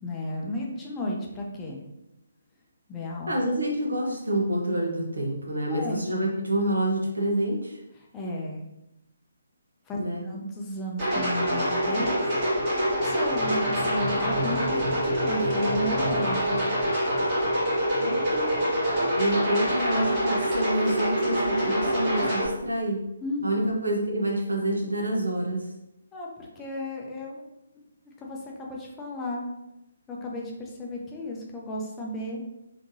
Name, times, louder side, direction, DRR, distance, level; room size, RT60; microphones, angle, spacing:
voice 1, 0.0-1.8 2.9-3.3 5.7-6.0 8.0-8.6 9.9-16.7 23.2-23.8 26.1-27.4 28.2-29.5 30.1-32.4, left 1 dB, 15° left, -2 dB, 0.5 m, -34 dB
voice 2, 3.3-7.8 10.0-10.2 18.0-18.6 19.2-23.0 23.4-25.6, right 1 dB, 70° right, -1 dB, 0.9 m, -27 dB
sound 1, 11.0-22.5, equal, 25° right, 1.3 m, -25 dB
3.5 x 2.8 x 2.7 m, 0.89 s
figure-of-eight pair, 140°, 0 cm